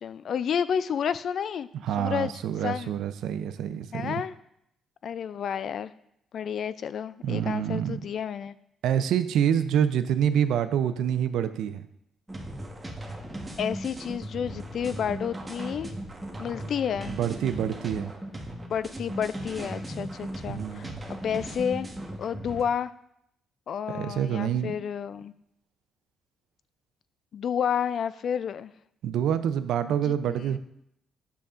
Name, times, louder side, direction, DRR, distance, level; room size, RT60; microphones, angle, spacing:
voice 1, 0.0-1.7 2.0-2.3 2.6-2.9 3.9-4.3 5.0-5.9 6.3-8.6 13.6-15.9 16.4-17.1 18.7-20.9 21.2-21.9 22.2-22.9 23.7-25.3 27.3-28.7 30.0-30.6, left 8 dB, 60° left, 15 dB, 0.3 m, -30 dB
voice 2, 1.8-4.2 7.2-8.0 8.8-11.9 17.1-18.1 20.5-21.0 23.9-24.7 29.0-30.6, right 9 dB, 80° right, 11 dB, 0.5 m, -27 dB
sound 1, 12.3-22.6, right 1 dB, 15° right, 1.2 m, -37 dB
10.5 x 6.9 x 2.5 m, 0.75 s
cardioid pair, 90°, 0 cm